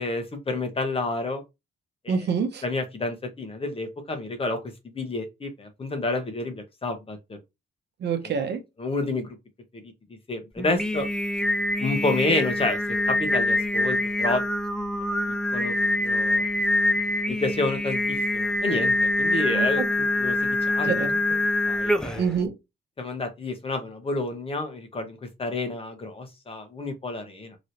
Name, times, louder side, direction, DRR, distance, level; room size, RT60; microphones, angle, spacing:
voice 1, 0.0-1.4 2.0-2.1 2.6-7.4 8.8-9.4 10.3-11.1 11.8-14.4 15.5-15.7 16.0-16.5 17.3-19.8 20.2-20.4 20.7-21.1 21.7-22.3 23.0-27.6, left 2 dB, 30° left, 1.1 m, -29 dB
voice 2, 2.1-2.6 8.0-8.6 19.5-19.9 20.8-21.4 22.2-22.6, right 6 dB, 60° right, 0.9 m, -27 dB
Singing, 10.6-22.3, left 1 dB, 5° left, 0.4 m, -25 dB
3.1 x 2.8 x 2.7 m
cardioid pair, 90°, 20 cm